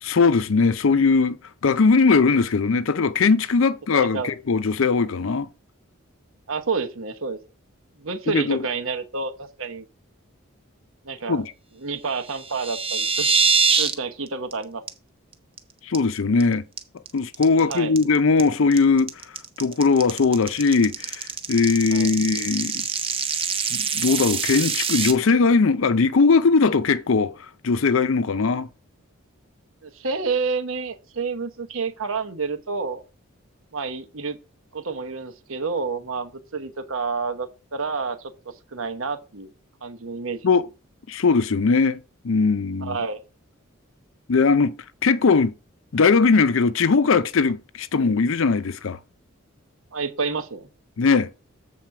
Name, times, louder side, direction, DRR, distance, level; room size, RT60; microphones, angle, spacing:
voice 1, 0.0-1.4 1.6-5.5 8.3-8.7 11.3-11.5 15.8-16.6 17.1-19.1 19.6-22.8 23.7-27.3 27.6-28.7 40.4-40.7 41.1-42.0 42.2-43.0 44.3-44.7 45.0-45.5 45.9-49.0 51.0-51.3, left 4 dB, 70° left, 0.5 m, -20 dB
voice 2, 4.0-4.3 6.5-7.4 8.0-9.8 11.0-11.4 11.8-13.3 13.8-14.8 17.5-18.0 21.9-22.1 29.8-33.0 33.7-34.4 34.7-39.5 39.8-40.5 42.8-43.2 49.9-50.7, right 4 dB, 70° right, 1.0 m, -29 dB
sound 1, 12.3-13.9 14.3-14.5 14.9-15.0 15.3-15.6 15.9-16.4 16.8-25.1, right 6 dB, 25° right, 0.7 m, -24 dB
7.5 x 4.1 x 5.8 m
head